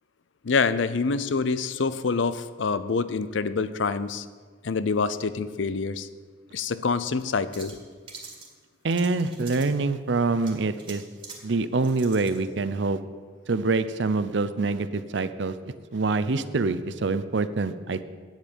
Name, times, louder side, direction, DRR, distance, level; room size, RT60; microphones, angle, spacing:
voice 1, 0.4-4.3 4.6-6.1 6.5-7.8, left 4 dB, 70° left, 14 dB, 0.5 m, -26 dB
sound 1, 7.2-7.3 7.5-8.5 8.9-9.8 10.4-11.4 11.8-12.5, right 4 dB, 25° right, 2.0 m, -44 dB
voice 2, 8.8-11.0 11.4-13.0 13.5-15.6 15.9-18.0, right 3 dB, 60° right, 13 dB, 0.6 m, -25 dB
9.1 x 8.0 x 8.6 m, 1.5 s
head